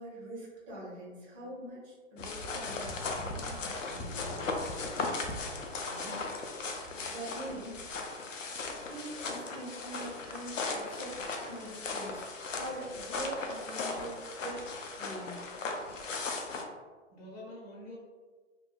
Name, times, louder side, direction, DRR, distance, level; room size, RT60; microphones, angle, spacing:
voice 1, 0.0-4.6 7.1-8.4 8.8-12.3 12.5-14.6 15.0-15.5, right 1 dB, 30° right, -6 dB, 1.2 m, -44 dB
sound 1, 2.2-16.6, left 3 dB, 85° left, 0.5 m, -37 dB
voice 2, 5.8-6.3 17.1-18.0, equal, 50° left, -4 dB, 1.3 m, -47 dB
2.7 x 2.6 x 2.4 m, 1.4 s
figure-of-eight pair, 110°, 37 cm